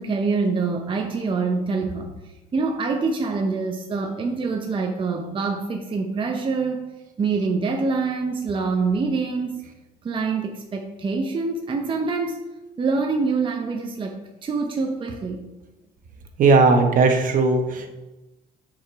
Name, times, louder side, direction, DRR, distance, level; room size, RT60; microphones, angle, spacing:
voice 1, 0.0-2.2 2.5-6.8 7.2-9.6 10.0-12.4 12.8-15.4, right 4 dB, 30° right, 2 dB, 0.7 m, -25 dB
voice 2, 16.4-17.9, right 3 dB, 50° right, 5 dB, 1.0 m, -17 dB
6.3 x 5.0 x 4.6 m, 1.0 s
cardioid pair, 110°, 17 cm